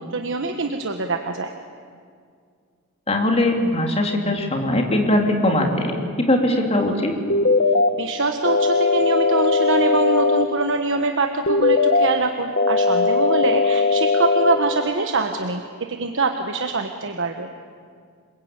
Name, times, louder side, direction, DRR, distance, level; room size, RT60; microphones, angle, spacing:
voice 1, 0.1-1.5 8.0-17.5, right 3 dB, 60° right, 5 dB, 1.3 m, -24 dB
voice 2, 3.1-5.9 6.2-7.1, left 1 dB, 30° left, 2 dB, 3.5 m, -20 dB
sound 1, 7.3-7.9 8.4-10.4 11.5-12.1 12.6-14.6, left 4 dB, 50° left, 1.4 m, -18 dB
27.5 x 22.0 x 8.9 m, 2.2 s
head